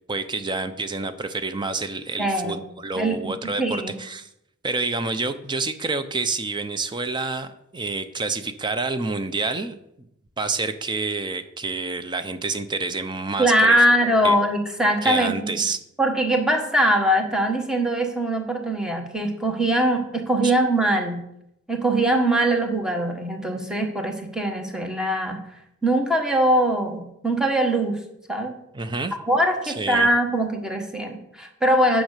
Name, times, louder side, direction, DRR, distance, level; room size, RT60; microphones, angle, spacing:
voice 1, 0.1-4.3 4.6-9.8 10.4-13.7 14.2-14.4 15.0-15.8 20.4-20.5 28.7-29.2 29.6-30.1, right 3 dB, 20° right, 10 dB, 0.6 m, -28 dB
voice 2, 2.2-2.6 3.0-3.9 13.4-15.6 16.0-21.2 21.7-25.4 25.8-28.0 28.3-28.5 29.3-32.0, right 1 dB, 5° right, 3 dB, 1.4 m, -22 dB
9.2 x 6.4 x 6.6 m, 0.79 s
head